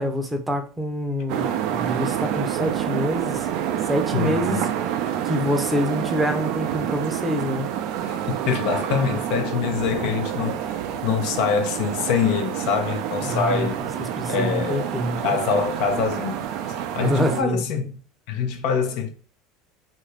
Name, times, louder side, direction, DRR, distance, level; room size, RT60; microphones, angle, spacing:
voice 1, 0.0-3.5 3.9-4.7 5.2-7.7 13.2-13.7 14.2-15.4 17.0-17.7, equal, 10° right, 0.6 m, -26 dB
sound 1, 1.3-17.4, right 10 dB, 65° right, 0.4 m, -28 dB
voice 2, 4.1-4.6 8.0-13.8 14.3-14.9 15.2-18.0 18.3-19.1, left 6 dB, 65° left, 0.6 m, -25 dB
2.8 x 2.5 x 3.2 m
supercardioid pair, 100°, 0 cm